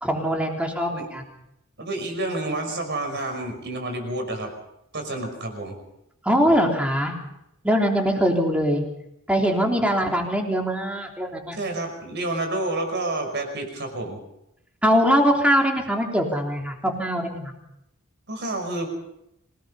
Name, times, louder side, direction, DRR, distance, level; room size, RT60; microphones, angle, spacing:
voice 1, 0.0-1.2 6.2-7.1 7.6-8.8 9.3-11.6 14.8-17.5, equal, 5° right, 1 dB, 3.4 m, -22 dB
voice 2, 1.8-4.5 4.9-5.8 11.5-14.2 18.3-18.9, right 2 dB, 50° right, 4 dB, 5.6 m, -29 dB
26.0 x 18.5 x 5.6 m, 0.83 s
head